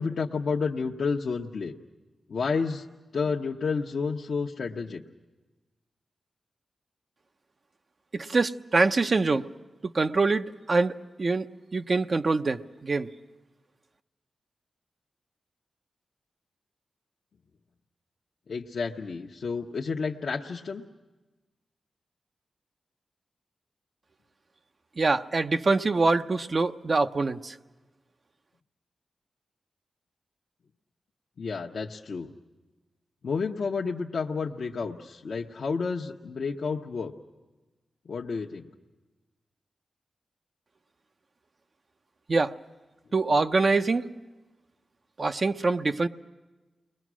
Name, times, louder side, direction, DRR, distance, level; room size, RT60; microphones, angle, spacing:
voice 1, 0.0-1.7 2.3-2.8 3.1-5.0 18.5-20.8 31.4-32.3 33.2-37.1 38.1-38.7, left 5 dB, 70° left, -1 dB, 0.9 m, -30 dB
voice 2, 8.1-9.5 9.9-11.5 11.7-13.1 25.0-27.5 42.3-42.5 43.1-44.1 45.2-46.1, right 3 dB, 50° right, 7 dB, 0.7 m, -24 dB
29.5 x 21.5 x 6.2 m, 1.2 s
cardioid pair, 55°, 0 cm